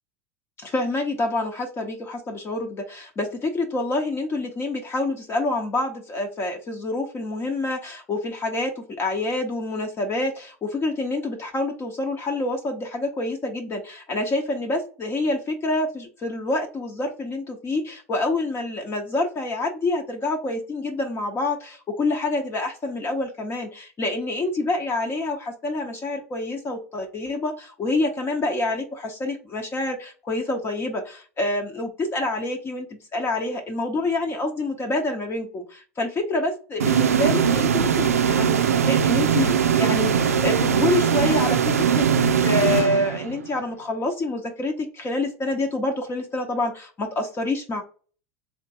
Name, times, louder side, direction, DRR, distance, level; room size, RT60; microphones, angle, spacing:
voice 1, 0.6-42.1 42.4-47.8, left 2 dB, 30° left, 3 dB, 1.0 m, -27 dB
sound 1, 36.8-43.6, right 7 dB, 90° right, 0.4 m, -20 dB
3.6 x 2.8 x 2.9 m, 0.38 s
hypercardioid pair, 85°, 8 cm